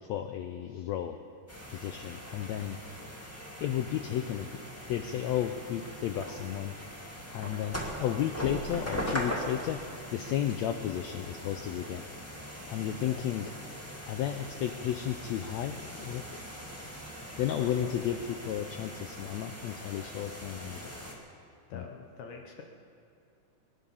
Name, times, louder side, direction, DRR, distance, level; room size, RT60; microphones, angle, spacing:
voice 1, 0.0-1.2 1.7-2.8 3.6-4.6 4.9-6.7 7.3-12.0 12.7-13.5 14.1-16.4 17.4-20.8 21.7-21.9, left 10 dB, 85° left, 7 dB, 1.5 m, -33 dB
sound 1, 1.5-21.1, equal, 10° left, 0.9 m, -41 dB
voice 2, 12.9-13.4 17.6-18.0 21.7-22.6, left 5 dB, 70° left, 2 dB, 2.2 m, -45 dB
22.5 x 10.0 x 5.5 m, 2.5 s
omnidirectional pair, 3.8 m